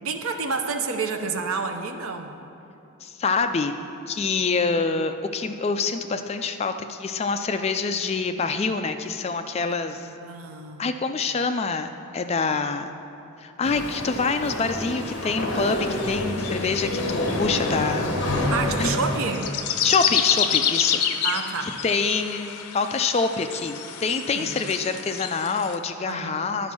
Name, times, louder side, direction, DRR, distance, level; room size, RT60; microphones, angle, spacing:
voice 1, 0.0-2.4 10.1-10.9 18.5-19.7 21.2-21.8 24.3-24.7 26.1-26.6, right 4 dB, 70° right, 5 dB, 0.7 m, -29 dB
voice 2, 3.0-3.8 4.1-10.1 10.8-12.9 13.4-18.1 18.8-18.9 19.8-21.0 21.8-26.7, left 4 dB, 30° left, 8 dB, 0.3 m, -26 dB
sound 1, 13.6-19.3, left 1 dB, 55° left, 1.1 m, -27 dB
Forest Bird Sounds, 15.7-25.8, left 8 dB, 85° left, 0.5 m, -29 dB
11.0 x 5.2 x 6.0 m, 2.8 s
head